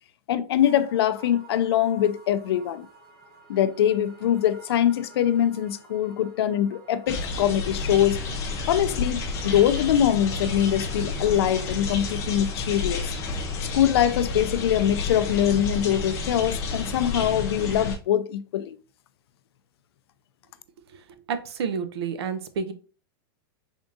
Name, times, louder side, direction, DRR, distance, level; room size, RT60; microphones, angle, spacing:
voice 1, 0.3-2.9 3.5-8.2 8.7-13.1 13.7-18.8, left 10 dB, 75° left, 0.4 m, -23 dB
sound 1, 0.6-13.0, right 3 dB, 60° right, 1.4 m, -51 dB
sound 2, 7.1-18.0, left 3 dB, 25° left, 0.5 m, -30 dB
voice 2, 21.3-22.7, right 6 dB, 80° right, 0.6 m, -29 dB
3.7 x 3.5 x 2.6 m
supercardioid pair, 170°, 13 cm